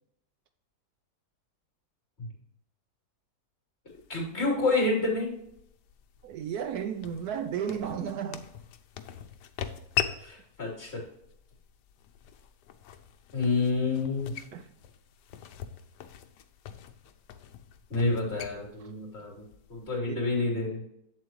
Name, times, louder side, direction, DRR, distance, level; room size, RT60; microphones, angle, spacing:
sound 1, 3.9-20.0, left 10 dB, 80° left, 1.3 m, -41 dB
voice 1, 4.1-5.4 10.2-11.0 13.3-14.3 17.9-19.4 19.7-20.8, left 3 dB, 35° left, 3.3 m, -28 dB
voice 2, 6.2-8.5 14.5-14.7 18.8-18.9 20.0-20.3, right 8 dB, 70° right, 1.0 m, -34 dB
8.1 x 7.4 x 3.0 m
omnidirectional pair, 1.8 m